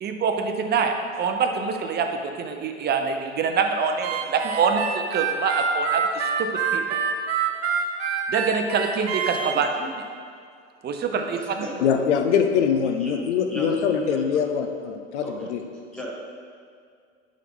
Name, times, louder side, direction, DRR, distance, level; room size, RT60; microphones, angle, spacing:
voice 1, 0.0-7.0 8.3-9.7 10.8-11.6, right 5 dB, 30° right, 5 dB, 0.7 m, -25 dB
Harmonica, 4.0-9.6, right 6 dB, 70° right, 0.8 m, -26 dB
voice 2, 9.5-9.9 11.1-12.0 13.0-13.2 13.5-14.4 15.2-15.5 15.9-16.1, equal, ahead, -5 dB, 1.8 m, -37 dB
voice 3, 11.8-15.6, left 7 dB, 85° left, 6 dB, 0.7 m, -23 dB
10.0 x 3.7 x 3.7 m, 2.2 s
hypercardioid pair, 95°, 34 cm